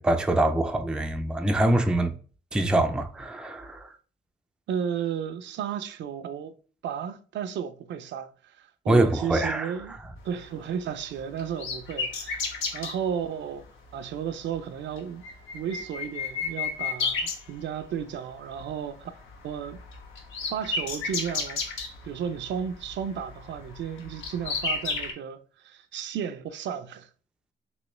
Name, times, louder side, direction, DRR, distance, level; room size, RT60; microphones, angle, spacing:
voice 1, 0.0-2.1 2.5-3.9 8.9-9.7, right 1 dB, 5° right, 0.3 m, -24 dB
voice 2, 4.7-6.5 6.8-10.0 10.2-12.5 12.7-13.6 13.9-15.2 15.5-19.1 19.4-19.8 20.4-21.6 22.0-27.1, right 8 dB, 65° right, 0.4 m, -33 dB
sound 1, 10.4-13.0 13.9-14.2 14.5-14.6 14.9-18.1 18.4-18.7 19.0-25.1, left 4 dB, 80° left, 0.8 m, -33 dB
3.1 x 3.0 x 3.0 m
cardioid pair, 90°, 20 cm